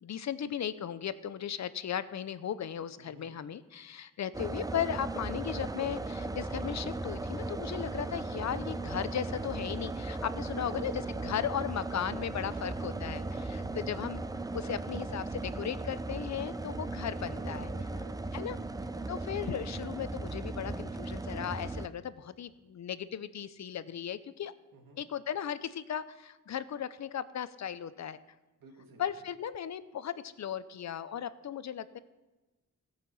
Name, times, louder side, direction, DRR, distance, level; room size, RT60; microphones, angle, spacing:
voice 1, 0.0-14.2 14.5-17.7 18.3-18.6 19.1-24.5 25.0-28.2 29.0-32.0, left 9 dB, 55° left, 14 dB, 0.7 m, -36 dB
voice 2, 3.0-3.3 10.4-10.9 13.6-14.0 17.2-19.2 24.7-25.1 28.6-29.1, right 2 dB, 85° right, 2 dB, 2.4 m, -53 dB
sound 1, 4.3-21.9, right 2 dB, 10° right, 0.4 m, -37 dB
16.5 x 5.9 x 7.1 m, 1.1 s
wide cardioid pair, 125°, 33 cm